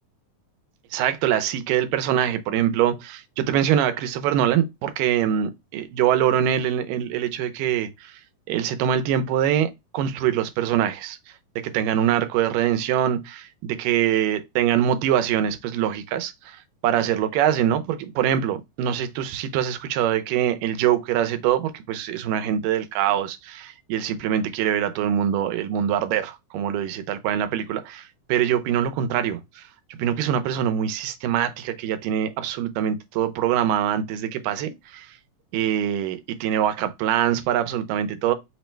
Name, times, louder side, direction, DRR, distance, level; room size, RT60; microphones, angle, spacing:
voice 1, 0.9-8.2 8.5-11.2 11.6-35.2 35.5-38.3, right 10 dB, 90° right, 2.3 m, -24 dB
5.8 x 2.1 x 4.4 m
omnidirectional pair, 3.8 m